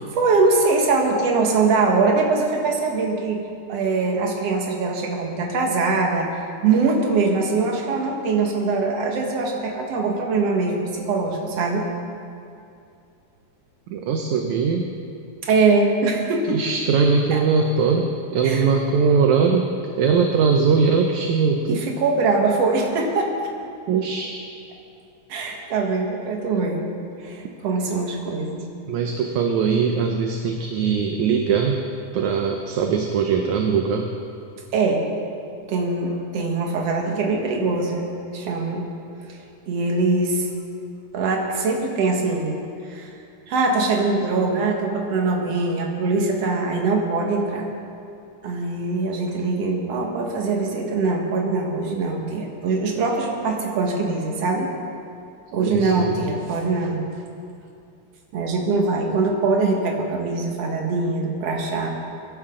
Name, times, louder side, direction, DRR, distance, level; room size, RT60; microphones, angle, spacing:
voice 1, 0.1-3.4 3.7-11.9 15.4-16.6 17.3-17.4 18.4-18.6 21.7-23.3 25.3-26.9 27.2-28.6 34.7-35.1 35.7-38.9 39.3-39.4 39.7-40.5 41.1-42.6 42.8-43.1 43.5-47.7 48.4-54.7 55.5-57.0 58.3-61.9, right 3 dB, 55° right, 0 dB, 2.4 m, -22 dB
voice 2, 13.9-14.8 16.5-19.7 20.0-21.8 23.9-24.4 28.9-31.8 32.1-34.1 55.6-56.1, right 5 dB, 70° right, 3 dB, 2.0 m, -21 dB
23.0 x 11.0 x 3.8 m, 2.5 s
omnidirectional pair, 3.8 m